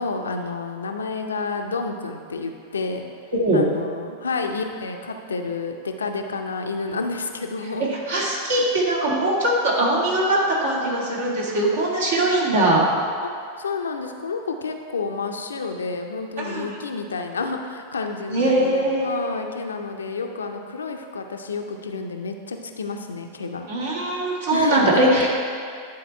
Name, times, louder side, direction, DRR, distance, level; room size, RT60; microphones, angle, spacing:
voice 1, 0.0-3.0 3.5-8.7 12.1-12.3 13.2-23.7 24.5-25.3, left 4 dB, 70° left, 4 dB, 0.6 m, -30 dB
voice 2, 3.3-3.6 7.9-12.8 16.4-16.7 18.3-19.1 23.7-25.3, right 1 dB, 60° right, -4 dB, 1.8 m, -21 dB
10.5 x 4.1 x 4.4 m, 2.3 s
figure-of-eight pair, 90°, 0 cm